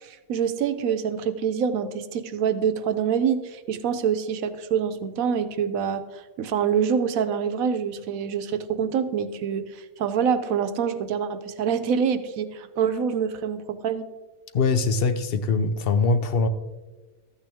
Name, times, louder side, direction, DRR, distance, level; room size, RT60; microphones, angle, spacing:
voice 1, 0.0-9.7 10.0-14.1, right 7 dB, 90° right, 11 dB, 1.1 m, -26 dB
voice 2, 14.5-16.5, left 4 dB, 55° left, 9 dB, 0.8 m, -22 dB
13.5 x 9.0 x 3.5 m, 1.2 s
omnidirectional pair, 1.4 m